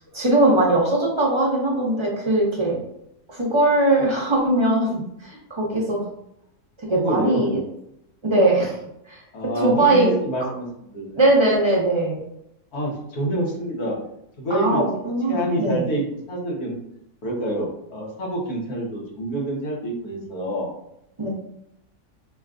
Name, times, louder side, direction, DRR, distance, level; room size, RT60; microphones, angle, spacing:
voice 1, 0.0-2.8 3.3-6.1 6.8-7.6 8.2-8.8 9.1-9.2 9.6-10.1 11.2-12.2 14.5-15.8 21.2-21.3, right 2 dB, 25° right, -3 dB, 0.8 m, -20 dB
voice 2, 6.9-7.4 9.3-11.3 12.7-14.0 14.4-14.8 15.3-16.8 17.2-20.7, right 1 dB, 85° left, -3 dB, 1.6 m, -27 dB
5.2 x 2.3 x 2.4 m, 0.80 s
omnidirectional pair, 1.6 m